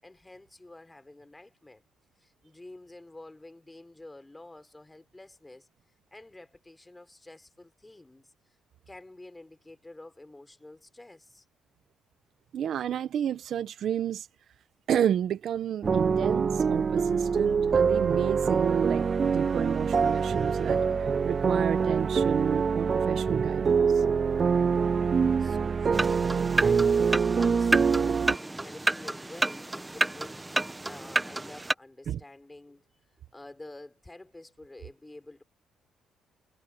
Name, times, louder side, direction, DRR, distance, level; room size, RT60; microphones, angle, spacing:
voice 1, 0.0-1.8 2.2-5.7 6.1-8.6 8.9-11.5 25.4-26.3 26.6-32.8 33.3-35.4, left 2 dB, 15° left, 5.3 m, -49 dB
voice 2, 12.5-14.3 14.9-20.8 21.2-23.9 32.1-32.2, right 9 dB, 65° right, 1.5 m, -31 dB
sound 1, 15.8-28.4, right 5 dB, 40° right, 0.4 m, -25 dB
sound 2, 25.9-31.7, right 2 dB, 15° right, 1.6 m, -30 dB
cardioid pair, 90°, 0 cm